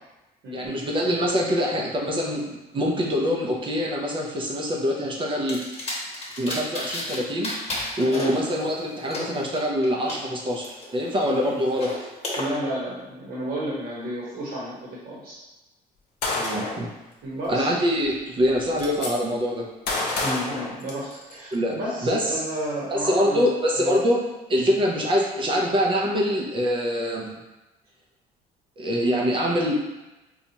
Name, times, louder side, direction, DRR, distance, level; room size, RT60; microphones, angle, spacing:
voice 1, 0.5-5.8 6.4-7.5 8.0-10.7 10.9-12.0 16.4-16.9 17.5-19.7 21.5-22.4 22.9-27.3 28.8-29.7, equal, 30° right, -2 dB, 0.6 m, -24 dB
sound 1, 5.5-7.2 7.4-10.2 10.6-12.4, left 1 dB, 35° left, 1.0 m, -33 dB
voice 2, 12.4-15.4 17.2-17.7 20.2-23.4 23.8-23.9 24.7-24.8, right 1 dB, 65° right, -7 dB, 1.1 m, -32 dB
Gunshot gunfire, 16.2-16.9 18.0-18.1 18.4-19.1 19.9-21.4, left 2 dB, 75° left, 0.9 m, -28 dB
4.1 x 2.4 x 2.8 m, 1.0 s
cardioid pair, 110°, 17 cm